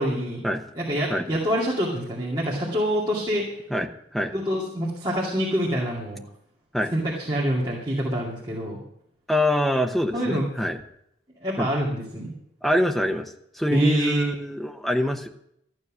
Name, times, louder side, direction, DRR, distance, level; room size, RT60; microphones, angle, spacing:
voice 1, 0.0-0.4 0.7-3.5 4.3-6.2 6.9-8.8 10.1-10.5 11.4-12.3 13.7-14.3, equal, 25° right, -5 dB, 2.4 m, -26 dB
voice 2, 3.7-4.3 6.7-6.9 9.3-10.8 11.6-11.7 12.6-15.3, equal, ahead, 4 dB, 0.8 m, -24 dB
14.0 x 9.6 x 6.2 m, 0.76 s
head